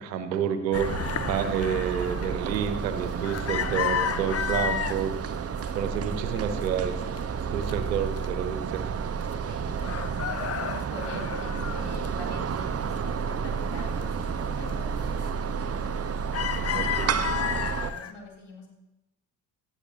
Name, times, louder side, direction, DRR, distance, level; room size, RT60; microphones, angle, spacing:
voice 1, 0.0-5.1 5.7-7.0 7.5-8.9 16.8-17.1, right 8 dB, 80° right, 9 dB, 1.0 m, -29 dB
sound 1, 0.7-5.0 5.5-6.1 6.3-7.7 8.2-8.3 8.6-9.5 9.8-12.6 13.0-14.0 14.5-14.7 15.2-15.6 15.9-18.1, left 8 dB, 30° left, 0.7 m, -32 dB
sound 2, 0.7-17.9, right 6 dB, 30° right, 0.8 m, -31 dB
voice 2, 5.8-6.1 7.3-7.9 9.5-10.4 10.9-15.9 16.5-18.7, left 3 dB, 55° left, -1 dB, 3.3 m, -45 dB
18.0 x 12.5 x 2.8 m, 0.96 s
figure-of-eight pair, 45°, 49 cm